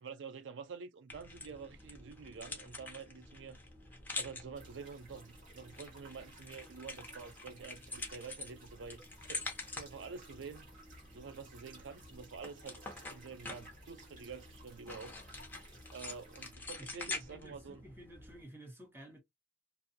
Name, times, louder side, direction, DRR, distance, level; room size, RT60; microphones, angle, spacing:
voice 1, 0.0-3.6 4.2-9.0 9.3-9.5 9.7-10.7 11.1-15.2 15.9-17.8, right 5 dB, 75° right, 0.4 m, -48 dB
sound 1, 1.1-18.4, left 3 dB, 10° left, 0.7 m, -47 dB
sound 2, 4.5-16.5, right 2 dB, 45° right, 1.4 m, -59 dB
voice 2, 16.8-19.2, right 1 dB, 10° right, 0.9 m, -52 dB
2.6 x 2.2 x 2.6 m
head